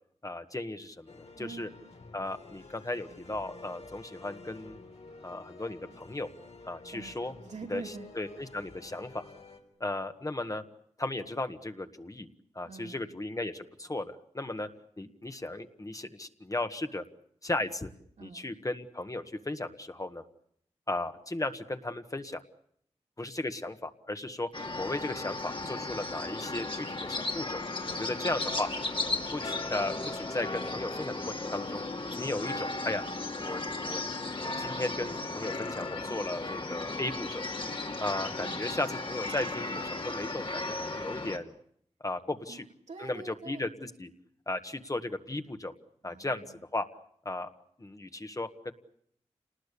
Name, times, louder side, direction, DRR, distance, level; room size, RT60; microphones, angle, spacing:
voice 1, 0.2-1.7 2.1-4.8 5.2-6.3 6.7-7.3 7.7-7.8 8.2-9.2 9.8-10.6 11.0-12.3 12.5-14.7 15.0-17.0 17.4-17.9 18.2-20.2 20.9-22.4 23.2-24.5 24.8-27.6 27.9-28.7 29.3-31.8 32.2-33.1 33.4-34.0 34.4-37.4 38.0-41.5 42.0-42.6 43.0-44.1 44.5-45.7 46.0-46.8 47.2-47.5 47.8-48.7, left 2 dB, 30° left, 8 dB, 1.6 m, -35 dB
sound 1, 1.1-9.6, left 3 dB, 70° left, 3.9 m, -51 dB
voice 2, 1.3-1.7 6.9-8.2 12.6-13.2 18.2-18.5 27.8-28.6 38.4-38.7 42.5-43.7 46.0-46.6, right 4 dB, 85° right, 2 dB, 2.8 m, -46 dB
sound 2, 24.5-41.4, left 2 dB, 50° left, 2.4 m, -35 dB
28.0 x 19.5 x 8.4 m, 0.69 s
wide cardioid pair, 60°, 12 cm